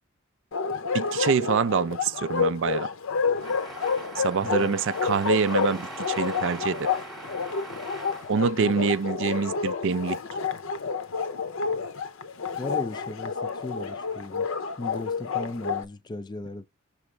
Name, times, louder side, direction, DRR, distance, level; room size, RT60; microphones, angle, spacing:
Bark, 0.5-15.8, left 5 dB, 60° left, 0.6 m, -29 dB
voice 1, 0.9-2.9 4.2-6.9 8.3-10.2, right 5 dB, 60° right, 0.4 m, -25 dB
sound 1, 3.4-9.1, right 2 dB, ahead, 1.0 m, -42 dB
voice 2, 4.4-4.7 8.6-8.9 12.6-14.5 14.8-16.7, left 2 dB, 20° left, 0.3 m, -37 dB
6.1 x 4.7 x 3.2 m
head